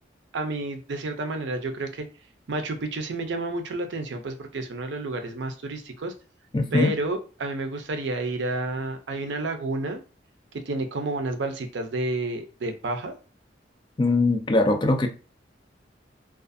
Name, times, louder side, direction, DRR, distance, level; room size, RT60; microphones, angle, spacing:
voice 1, 0.3-2.1 2.5-6.1 6.7-10.0 10.5-13.1, right 2 dB, 75° right, 0.5 m, -30 dB
voice 2, 6.5-6.9 14.0-15.1, left 2 dB, 25° left, 0.3 m, -21 dB
2.4 x 2.3 x 2.5 m
head